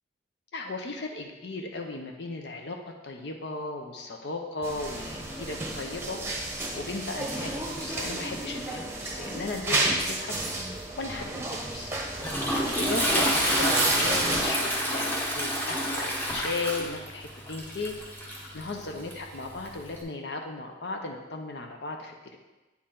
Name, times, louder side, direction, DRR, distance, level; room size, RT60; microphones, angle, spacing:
voice 1, 0.5-2.8 3.0-6.2 6.7-10.4 11.0-12.0 12.7-18.0 18.5-22.4, left 3 dB, 65° left, 3 dB, 0.6 m, -36 dB
sound 1, 4.6-14.4, right 2 dB, 15° right, 0.9 m, -31 dB
Toilet flush, 11.7-20.0, equal, 10° left, 1.0 m, -29 dB
8.4 x 4.4 x 3.8 m, 1.1 s
head